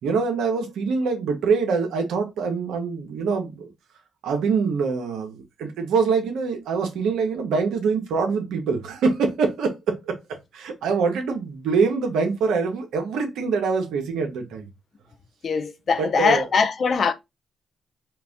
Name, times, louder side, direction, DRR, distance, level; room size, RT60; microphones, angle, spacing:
voice 1, 0.0-3.7 4.2-10.1 10.5-14.7 16.0-16.5, right 5 dB, 80° right, 1.3 m, -24 dB
voice 2, 15.4-17.1, left 5 dB, 55° left, 0.7 m, -22 dB
4.5 x 2.7 x 3.7 m
supercardioid pair, 65°, 0 cm